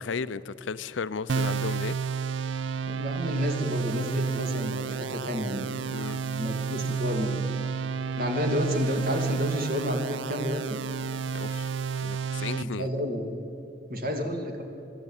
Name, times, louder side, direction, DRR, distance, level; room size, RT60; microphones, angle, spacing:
voice 1, 0.0-2.0 5.9-6.2 11.3-11.7 12.0-12.9, left 5 dB, 85° left, 15 dB, 0.5 m, -34 dB
sound 1, 1.3-12.6, right 6 dB, 80° right, 0.5 m, -31 dB
voice 2, 2.9-6.0 6.3-7.4 8.1-10.7 12.6-13.4 13.9-14.6, left 1 dB, 50° right, 3 dB, 2.5 m, -30 dB
23.0 x 13.0 x 9.0 m, 2.8 s
head